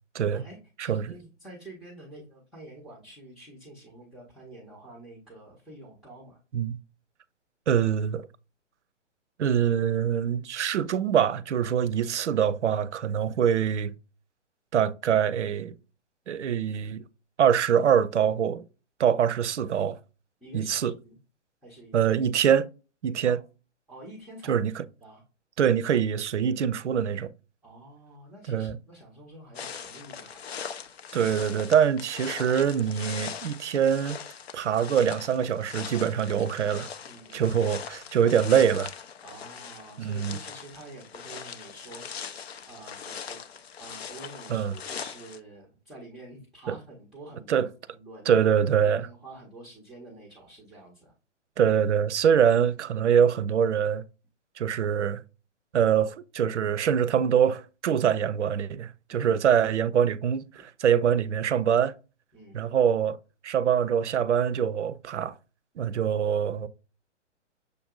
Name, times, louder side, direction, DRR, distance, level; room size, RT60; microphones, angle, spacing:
voice 1, 0.2-6.4 20.4-21.2 21.6-22.0 23.2-23.4 23.9-24.6 25.0-25.2 27.6-30.4 37.0-37.6 39.2-42.4 42.7-43.4 43.8-47.7 47.9-48.4 48.8-51.1 54.8-55.2 59.1-59.3 62.3-62.6, right 2 dB, ahead, 0.6 m, -48 dB
voice 2, 7.7-8.3 9.4-13.9 14.7-15.7 16.3-17.0 17.4-18.6 19.0-20.0 20.5-20.9 21.9-22.7 23.0-23.4 24.5-24.8 25.6-27.3 28.5-28.8 31.1-34.2 34.5-36.9 37.3-38.9 40.0-40.4 44.5-44.7 46.7-46.8 47.5-47.7 48.3-49.1 51.6-54.0 54.6-55.2 55.7-60.5 60.8-61.9 62.5-63.2 63.4-65.3 65.8-66.7, right 8 dB, 70° right, 0.5 m, -24 dB
sound 1, 29.5-45.4, left 7 dB, 55° left, 0.6 m, -41 dB
6.6 x 2.6 x 2.3 m
figure-of-eight pair, 125°, 37 cm